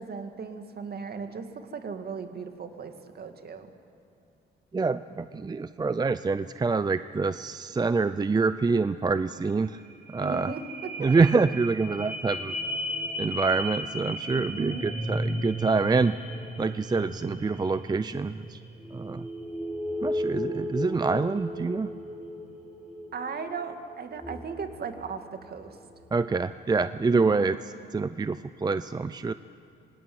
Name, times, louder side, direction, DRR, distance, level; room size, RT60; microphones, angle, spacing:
voice 1, 0.0-3.7 10.2-10.9 14.3-14.9 23.1-25.8 27.1-27.6, right 5 dB, 50° right, 7 dB, 2.3 m, -37 dB
voice 2, 4.7-9.8 10.1-10.5 11.0-12.6 13.2-16.2 16.6-18.6 18.9-19.3 20.0-21.9 26.1-27.6 27.9-29.3, right 4 dB, 20° right, 13 dB, 0.5 m, -26 dB
sound 1, 9.4-9.5 9.8-25.7 26.2-26.3, equal, 5° right, 5.8 m, -35 dB
25.5 x 19.0 x 9.6 m, 2.5 s
cardioid pair, 90°, 20 cm